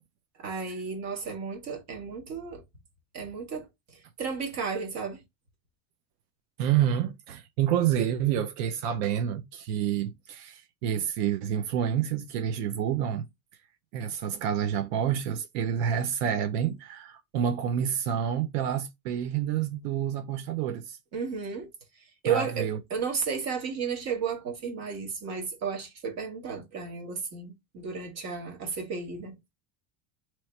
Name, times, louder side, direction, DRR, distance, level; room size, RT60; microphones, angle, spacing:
voice 1, 0.4-2.6 3.1-5.2 21.1-21.7 22.2-29.3, right 6 dB, 35° right, 1.2 m, -33 dB
voice 2, 6.6-13.3 13.9-21.0 22.3-22.8, right 9 dB, 80° right, 0.7 m, -28 dB
3.1 x 3.0 x 4.3 m
cardioid pair, 165°, 47 cm